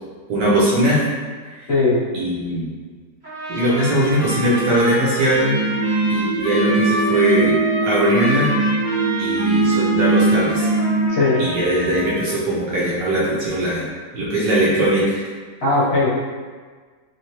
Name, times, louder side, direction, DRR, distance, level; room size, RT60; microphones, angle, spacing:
voice 1, 0.3-1.0 1.5-1.6 2.1-2.7 3.5-5.6 6.1-7.6 7.8-8.5 9.2-10.7 11.4-13.9 14.1-15.2, right 1 dB, 80° right, -7 dB, 1.4 m, -20 dB
voice 2, 1.7-2.0 11.1-11.4 15.6-16.1, left 3 dB, 45° left, -9 dB, 0.9 m, -17 dB
Trumpet, 3.2-12.4, equal, 30° right, 1.3 m, -29 dB
sound 1, 5.4-11.1, right 3 dB, 60° right, 1.7 m, -21 dB
3.2 x 3.1 x 2.9 m, 1.5 s
omnidirectional pair, 1.9 m